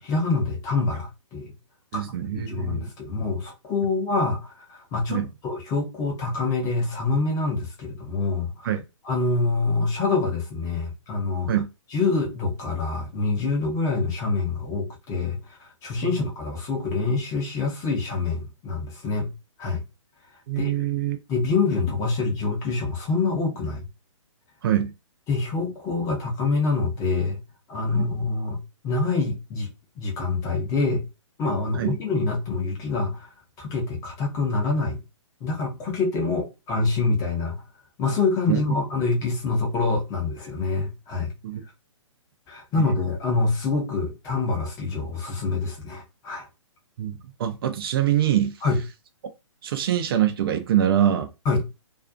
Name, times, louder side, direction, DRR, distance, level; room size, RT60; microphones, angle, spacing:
voice 1, 0.0-1.5 1.9-2.0 2.3-8.7 9.0-11.5 11.9-19.3 19.6-19.8 20.6-20.7 21.3-23.8 25.3-27.4 27.7-29.7 30.0-31.0 31.4-33.3 33.6-35.0 35.4-37.6 38.0-41.3 42.5-46.5 48.6-48.8 51.4-51.6, left 3 dB, 20° left, 0.7 m, -26 dB
voice 2, 1.9-2.9 5.1-5.3 8.6-8.8 11.5-11.7 16.0-16.1 20.5-21.2 24.6-24.9 27.9-28.0 31.8-32.0 38.5-38.6 41.4-41.6 42.8-42.9 47.0-48.5 49.6-51.3, right 11 dB, 45° right, 0.4 m, -24 dB
2.5 x 2.3 x 2.4 m
hypercardioid pair, 135°, 17 cm